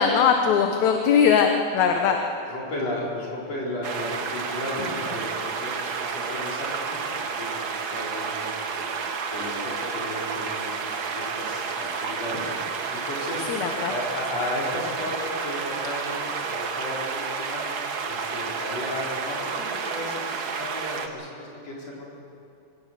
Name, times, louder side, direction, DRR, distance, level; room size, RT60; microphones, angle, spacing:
voice 1, 0.0-1.5 1.7-2.2 13.5-13.9, left 7 dB, 70° left, 4 dB, 2.2 m, -20 dB
voice 2, 2.4-8.9 9.3-22.0, left 1 dB, 50° left, -4 dB, 5.5 m, -34 dB
sound 1, 3.8-21.1, right 5 dB, 75° right, 0.9 m, -31 dB
25.5 x 17.0 x 6.7 m, 2.6 s
omnidirectional pair, 3.7 m